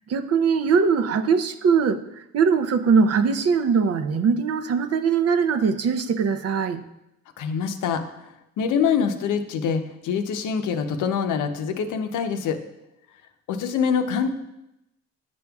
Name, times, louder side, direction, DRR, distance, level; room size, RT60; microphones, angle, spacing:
voice 1, 0.1-6.8, right 5 dB, 55° right, 11 dB, 0.6 m, -21 dB
voice 2, 7.4-12.6 13.5-14.3, left 6 dB, 80° left, 7 dB, 0.7 m, -25 dB
9.7 x 5.2 x 2.3 m, 0.89 s
cardioid pair, 90°, 30 cm